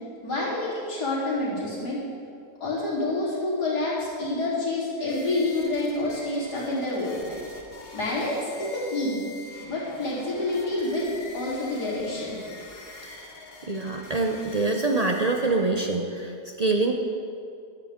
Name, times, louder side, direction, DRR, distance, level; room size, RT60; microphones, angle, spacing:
voice 1, 0.2-2.0 2.6-7.4 7.9-9.2 9.7-11.1 11.3-12.4, left 2 dB, 75° left, -8 dB, 4.0 m, -28 dB
sound 1, 5.0-16.0, left 3 dB, 40° left, 1.3 m, -45 dB
voice 2, 13.7-16.9, right 3 dB, 65° right, 2 dB, 0.3 m, -25 dB
14.5 x 12.0 x 3.7 m, 2.5 s
omnidirectional pair, 1.7 m